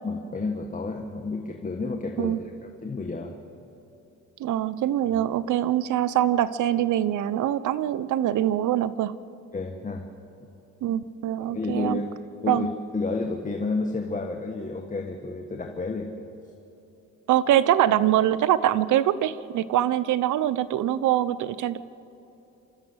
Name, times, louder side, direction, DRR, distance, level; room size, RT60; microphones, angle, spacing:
voice 1, 0.0-3.3 9.5-10.1 11.4-12.2 12.4-12.7 12.9-16.1, left 3 dB, 25° left, 3 dB, 1.6 m, -31 dB
voice 2, 4.4-9.2 10.8-12.0 12.5-12.7 17.3-21.8, right 12 dB, 75° right, 15 dB, 0.8 m, -23 dB
28.5 x 13.5 x 8.1 m, 2.9 s
cardioid pair, 90°, 30 cm